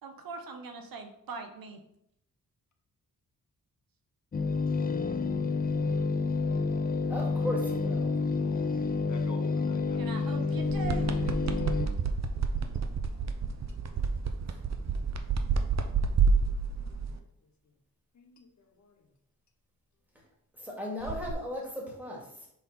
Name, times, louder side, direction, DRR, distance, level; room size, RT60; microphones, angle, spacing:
voice 1, 0.0-1.8 10.0-11.3, right 4 dB, 80° right, 5 dB, 0.9 m, -41 dB
sound 1, 4.3-11.9, left 4 dB, 25° left, 0.5 m, -29 dB
voice 2, 7.1-8.2 14.5-14.6 20.6-22.5, left 1 dB, 5° right, -3 dB, 2.3 m, -36 dB
voice 3, 9.1-10.2 12.7-13.3 13.6-13.9 14.2-14.4 15.3-15.5 16.2-17.3 18.1-18.9, left 4 dB, 55° left, 4 dB, 0.9 m, -51 dB
sound 2, 10.6-17.1 21.0-21.3, right 5 dB, 50° right, 0.6 m, -29 dB
5.6 x 3.9 x 4.3 m, 0.75 s
cardioid pair, 80°, 34 cm